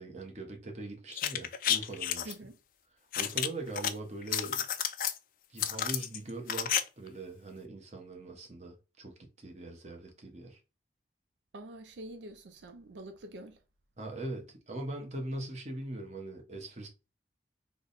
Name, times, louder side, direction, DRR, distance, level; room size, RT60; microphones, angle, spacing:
voice 1, 0.0-2.3 3.2-4.7 5.5-10.6 14.0-16.9, right 2 dB, 40° right, 0.8 m, -41 dB
sound 1, 1.1-2.3 3.1-3.9 4.2-5.2 5.6-6.8 7.1-7.2, left 10 dB, 50° left, 0.3 m, -31 dB
voice 2, 2.2-2.6 11.5-13.6, right 1 dB, 85° right, 0.5 m, -46 dB
3.3 x 2.1 x 3.9 m
head